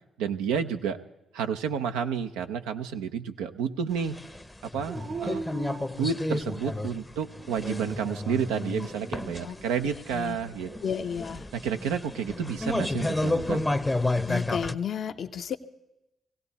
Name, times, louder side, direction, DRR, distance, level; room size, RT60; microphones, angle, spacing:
voice 1, 0.2-1.0 1.3-4.2 4.6-5.4 6.0-10.7 11.5-13.7, right 7 dB, 90° right, 6 dB, 0.7 m, -30 dB
sound 1, 4.1-14.7, left 2 dB, 15° left, 0.7 m, -31 dB
Dog, 4.9-6.8 7.4-8.2 10.5-11.3, right 4 dB, 60° right, 1.0 m, -40 dB
voice 2, 10.8-11.5 14.3-15.6, left 7 dB, 65° left, 8 dB, 0.8 m, -32 dB
18.0 x 16.5 x 4.1 m, 0.93 s
supercardioid pair, 50°, 0 cm